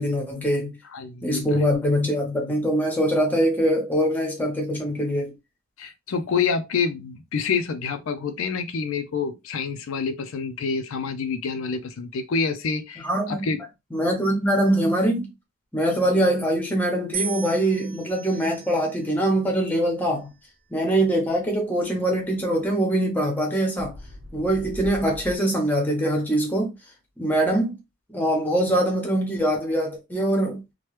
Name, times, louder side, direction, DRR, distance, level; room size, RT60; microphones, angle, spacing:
voice 1, 0.0-0.8 1.2-5.3 13.0-13.4 13.9-15.3 15.7-20.3 20.7-23.9 24.3-26.7 27.2-27.7 28.1-30.6, right 1 dB, 10° left, 0.8 m, -23 dB
voice 2, 0.9-1.6 5.8-13.6, left 5 dB, 75° left, 0.4 m, -27 dB
sound 1, 17.1-19.3 20.1-20.7, right 5 dB, 60° right, 0.6 m, -36 dB
sound 2, 22.4-22.5 23.8-25.4, left 1 dB, 85° right, 1.0 m, -39 dB
3.0 x 2.2 x 3.1 m
head